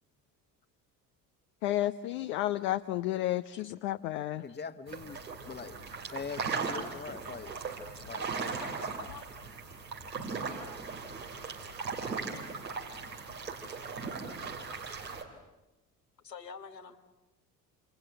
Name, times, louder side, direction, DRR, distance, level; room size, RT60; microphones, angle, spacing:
voice 1, 1.6-4.4, left 14 dB, 65° left, 8 dB, 1.0 m, -31 dB
voice 2, 4.4-5.8 6.1-7.5 8.0-8.6 15.0-15.2, left 5 dB, 20° left, 10 dB, 1.5 m, -43 dB
sound 1, 4.9-15.2, right 4 dB, 85° right, 3.3 m, -38 dB
voice 3, 8.7-9.2 16.2-17.0, left 6 dB, 90° left, 3 dB, 2.0 m, -47 dB
28.0 x 27.0 x 7.8 m, 1.0 s
figure-of-eight pair, 60°, 48 cm